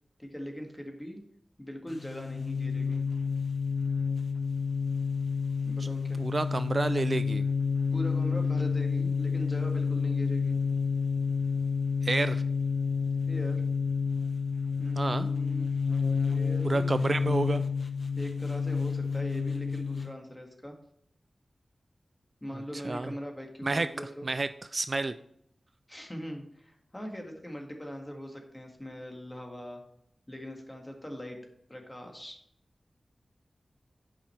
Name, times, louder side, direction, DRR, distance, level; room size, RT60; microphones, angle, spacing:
voice 1, 0.2-1.2 1.6-3.0 5.7-6.2 7.9-10.6 13.3-13.7 14.8-15.7 16.3-17.2 18.2-20.8 22.4-24.3 25.9-29.8 30.3-31.4 31.7-32.4, equal, 15° left, 2 dB, 1.9 m, -41 dB
sound 1, 1.9-20.1, left 5 dB, 50° left, 0.9 m, -29 dB
voice 2, 6.2-7.5 12.0-12.4 15.0-15.3 16.6-17.6 22.8-23.1 23.6-23.9 24.2-25.2, right 3 dB, 50° right, 12 dB, 0.4 m, -29 dB
8.8 x 5.5 x 4.5 m, 0.71 s
wide cardioid pair, 75°, 0 cm